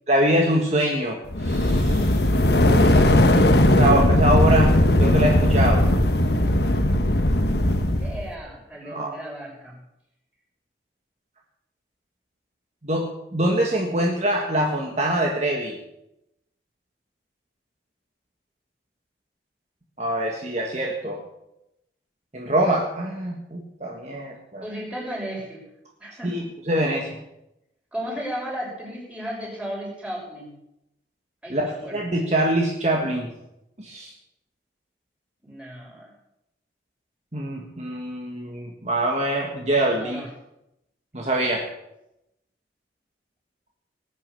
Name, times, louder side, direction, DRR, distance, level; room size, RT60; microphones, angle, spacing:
voice 1, 0.1-2.2 2.6-3.2 3.7-5.9 8.8-9.2 12.8-15.8 20.0-21.2 22.3-24.6 26.2-27.2 31.5-33.3 33.8-34.1 37.3-40.2 41.1-41.7, right 1 dB, 35° right, 0 dB, 1.7 m, -24 dB
sound 1, 1.3-8.3, left 1 dB, 65° left, 1.3 m, -18 dB
voice 2, 8.0-9.8 24.6-25.6 26.0-26.4 27.9-30.6 31.4-32.0 35.4-36.1 39.9-40.3, equal, 5° right, -4 dB, 6.1 m, -34 dB
19.5 x 9.6 x 6.9 m, 0.86 s
head